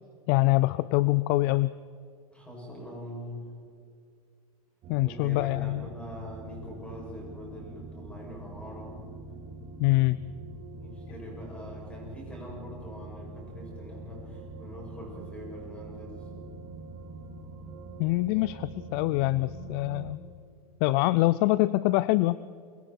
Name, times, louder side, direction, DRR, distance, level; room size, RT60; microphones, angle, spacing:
voice 1, 0.3-1.7 4.9-5.9 9.8-10.2 18.0-20.2 20.8-22.4, left 19 dB, 40° left, 17 dB, 0.4 m, -24 dB
voice 2, 2.3-3.5 5.0-9.0 10.8-16.3, left 1 dB, 5° left, -2 dB, 7.6 m, -43 dB
sound 1, 4.8-20.1, right 3 dB, 35° right, 2.4 m, -44 dB
28.0 x 24.5 x 4.6 m, 2.3 s
supercardioid pair, 150°, 19 cm